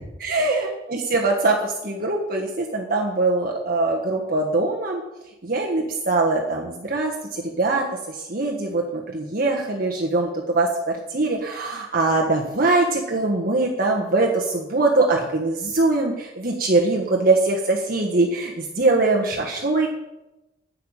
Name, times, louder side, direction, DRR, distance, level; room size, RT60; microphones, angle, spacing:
voice 1, 0.2-5.0 5.4-19.9, right 2 dB, 50° right, -1 dB, 1.5 m, -22 dB
10.5 x 6.7 x 9.1 m, 0.97 s
head